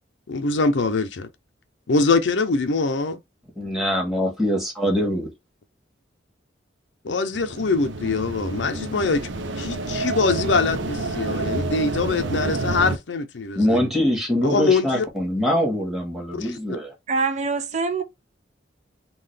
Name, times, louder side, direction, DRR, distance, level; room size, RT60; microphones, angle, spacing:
voice 1, 0.3-1.3 1.9-3.2 7.0-9.3 9.6-13.8 14.4-15.0 16.3-16.5, left 3 dB, 75° left, 0.6 m, -23 dB
voice 2, 3.5-5.3 13.5-16.9, equal, ahead, 1.5 m, -23 dB
sound 1, 7.3-13.0, right 2 dB, 85° right, 0.6 m, -28 dB
voice 3, 17.1-18.0, right 4 dB, 40° right, 0.5 m, -24 dB
3.8 x 2.4 x 3.3 m
head